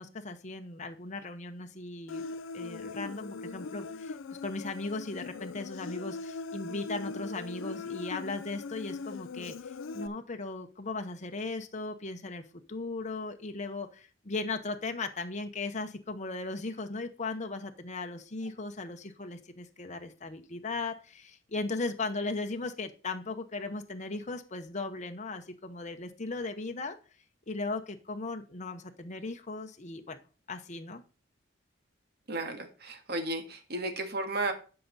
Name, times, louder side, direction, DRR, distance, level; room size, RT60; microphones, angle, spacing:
voice 1, 0.0-2.2 2.5-4.2 4.4-12.4 12.7-27.0 27.5-30.2 30.5-31.0, left 3 dB, 35° left, 6 dB, 0.8 m, -37 dB
Human voice, 2.1-10.1, left 4 dB, 80° left, 0.4 m, -40 dB
voice 2, 32.3-34.5, right 2 dB, 55° right, 6 dB, 1.7 m, -33 dB
11.5 x 5.9 x 4.0 m, 0.36 s
head